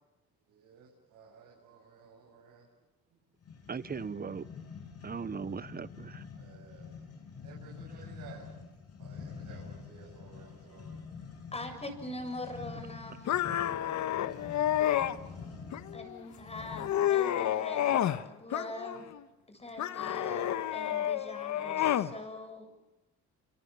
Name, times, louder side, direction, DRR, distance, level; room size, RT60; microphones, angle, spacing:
voice 1, 0.5-2.6 6.4-7.0 7.4-8.5 9.0-11.1 13.8-13.9 14.9-15.5, right 5 dB, 85° right, 7.4 m, -55 dB
sound 1, 3.4-17.1, left 5 dB, 55° left, 7.6 m, -47 dB
voice 2, 3.7-4.5 5.0-6.3 13.3-13.4, right 6 dB, 30° right, 1.1 m, -38 dB
voice 3, 11.5-13.3 15.9-19.1 19.5-22.9, left 1 dB, 20° left, 7.3 m, -43 dB
sound 2, 13.3-15.2 15.7-16.2 16.6-18.2 18.5-19.2 19.8-22.1, left 11 dB, 70° left, 1.4 m, -30 dB
28.0 x 27.0 x 7.1 m
cardioid pair, 90°, 30 cm